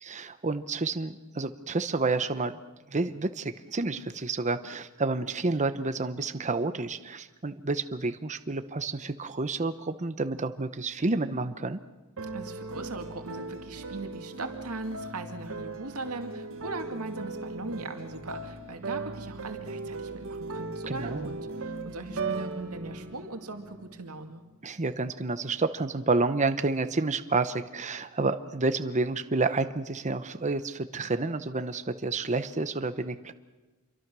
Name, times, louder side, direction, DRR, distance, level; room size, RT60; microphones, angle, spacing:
voice 1, 0.0-2.6 2.9-11.8 20.9-21.3 24.6-33.3, right 3 dB, 35° right, 10 dB, 0.9 m, -29 dB
sound 1, 12.2-24.3, right 3 dB, 65° right, 1.6 m, -38 dB
voice 2, 12.3-24.4, right 3 dB, 80° right, 5 dB, 2.2 m, -39 dB
27.5 x 23.5 x 6.2 m, 1.2 s
head